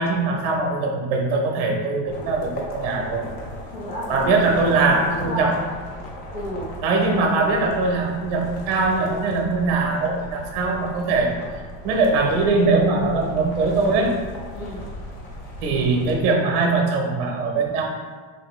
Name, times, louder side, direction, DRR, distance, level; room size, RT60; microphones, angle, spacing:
voice 1, 0.0-3.2 4.1-5.6 6.8-11.3 11.8-14.1 15.6-17.8, right 3 dB, 60° right, 1 dB, 0.6 m, -21 dB
sound 1, 2.0-16.2, left 1 dB, 30° left, 0.4 m, -37 dB
voice 2, 3.7-5.6 6.3-6.7 14.5-14.8, equal, 75° left, -10 dB, 1.0 m, -31 dB
3.1 x 2.6 x 3.0 m, 1.5 s
cardioid pair, 170°, 33 cm